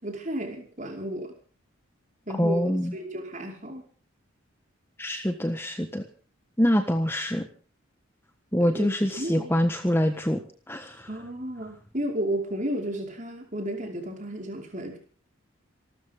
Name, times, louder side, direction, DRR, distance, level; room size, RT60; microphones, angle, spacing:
voice 1, 0.0-1.3 2.3-3.8 8.6-9.6 11.1-15.0, right 1 dB, 35° right, 2 dB, 5.2 m, -33 dB
voice 2, 2.4-2.9 5.0-6.1 6.6-7.5 8.5-10.4 10.7-11.1, equal, 10° left, 6 dB, 1.4 m, -25 dB
27.5 x 13.0 x 3.8 m, 0.40 s
head